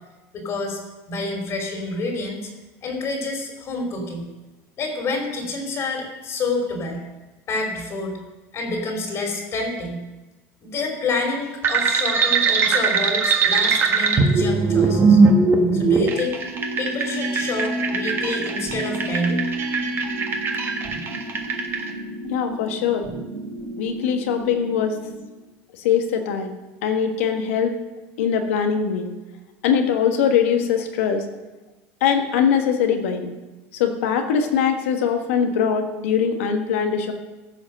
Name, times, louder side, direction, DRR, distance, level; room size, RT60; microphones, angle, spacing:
voice 1, 0.3-0.8 1.1-2.5 2.8-4.3 4.8-7.0 7.5-8.2 8.5-10.0 10.6-15.2 15.7-16.4 16.8-19.4, left 2 dB, 45° left, 2 dB, 2.7 m, -28 dB
sound 1, 11.6-21.8, right 4 dB, 35° right, 1.4 m, -20 dB
sound 2, 16.5-25.2, right 1 dB, 55° right, 4.4 m, -32 dB
voice 2, 22.2-23.1 23.8-25.0 25.8-26.5 26.8-27.8 28.2-29.1 29.6-31.2 32.0-33.3 33.7-37.1, left 7 dB, 90° left, 6 dB, 1.4 m, -21 dB
15.0 x 5.1 x 6.7 m, 1.1 s
supercardioid pair, 115°, 7 cm